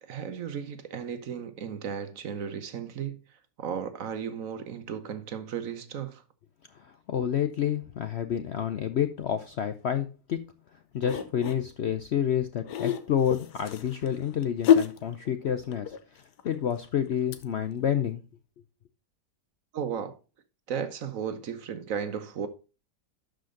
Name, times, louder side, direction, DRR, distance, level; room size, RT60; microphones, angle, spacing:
voice 1, 0.0-6.2 19.7-20.2 20.7-22.5, right 7 dB, 60° right, 1.2 m, -35 dB
voice 2, 6.8-10.4 10.9-15.9 16.4-18.2, left 9 dB, 65° left, 0.7 m, -29 dB
sound 1, 11.0-11.6 12.6-17.4 17.8-17.9, left 9 dB, 85° left, 1.5 m, -28 dB
12.0 x 5.1 x 3.7 m
omnidirectional pair, 1.7 m